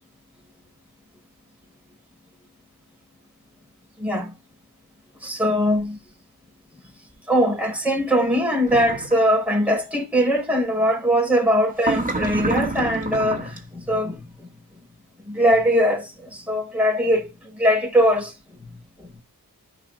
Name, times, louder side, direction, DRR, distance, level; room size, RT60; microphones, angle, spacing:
voice 1, 4.0-4.3 5.2-6.0 7.3-14.5 15.3-18.3, equal, 5° right, 6.1 m, -21 dB
sound 1, 8.7-9.2 11.8-13.6, right 2 dB, 20° right, 3.0 m, -27 dB
9.1 x 6.3 x 4.1 m
wide cardioid pair, 65°, 37 cm